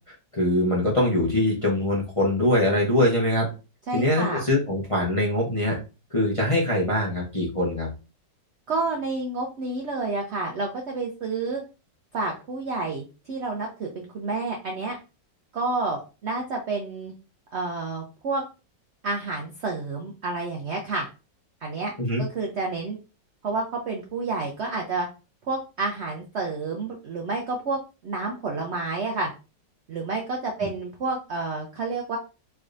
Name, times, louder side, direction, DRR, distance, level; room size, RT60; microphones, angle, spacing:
voice 1, 0.1-3.5 3.9-5.8 6.1-7.9 22.0-22.2, left 1 dB, 35° left, -4 dB, 0.5 m, -23 dB
voice 2, 3.9-4.4 8.7-11.6 12.1-15.0 15.5-17.1 17.5-18.4 19.0-21.1 21.6-21.9 22.2-23.0 23.4-25.1 25.5-29.3 29.9-32.2, right 3 dB, 85° right, 1 dB, 0.5 m, -29 dB
3.5 x 3.2 x 2.5 m, 0.31 s
omnidirectional pair, 2.0 m